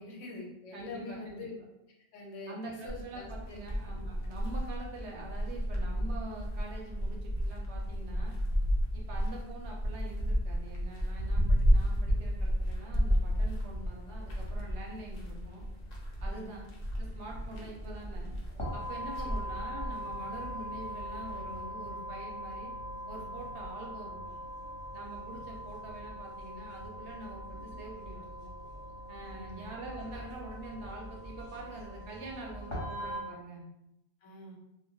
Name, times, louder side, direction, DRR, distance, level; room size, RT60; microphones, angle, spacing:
voice 1, 0.0-1.5 2.1-3.6 16.2-16.5 19.2-19.5 29.3-29.7 34.2-34.6, left 2 dB, 90° left, 0 dB, 1.0 m, -45 dB
voice 2, 0.7-1.5 2.5-8.3 8.9-15.6 16.2-16.6 17.0-18.3 18.7-22.7 23.1-24.3 24.9-28.5 29.1-33.6, right 2 dB, 70° right, -1 dB, 0.8 m, -45 dB
sound 1, 2.9-21.4, equal, 65° left, 0.4 m, -32 dB
sound 2, 17.0-33.2, equal, 30° left, 0.7 m, -42 dB
2.2 x 2.1 x 2.6 m, 0.86 s
omnidirectional pair, 1.3 m